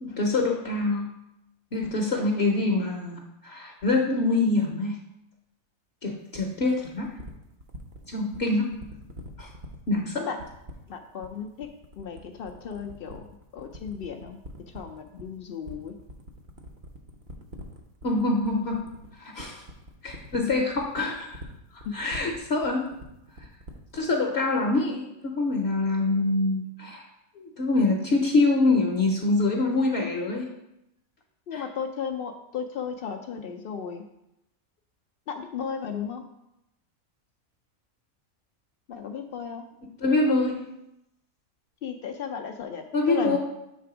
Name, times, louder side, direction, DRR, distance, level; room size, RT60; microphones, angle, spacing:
voice 1, 0.0-1.1 1.7-5.0 6.0-7.1 8.1-8.7 9.4-9.5 9.9-10.2 18.0-18.8 19.2-19.6 20.0-21.4 21.7-22.9 23.9-27.1 27.4-30.5 31.5-31.6 40.0-40.6 42.9-43.4, left 2 dB, 55° left, 0 dB, 0.9 m, -25 dB
sound 1, 6.3-24.1, equal, 45° right, 0.7 m, -44 dB
voice 2, 10.9-11.7 11.9-14.4 14.7-16.0 20.3-20.4 21.8-21.9 31.5-34.1 35.3-36.3 38.9-39.6 41.8-43.4, left 7 dB, 70° left, 5 dB, 0.5 m, -35 dB
7.4 x 3.4 x 4.8 m, 0.87 s
omnidirectional pair, 1.5 m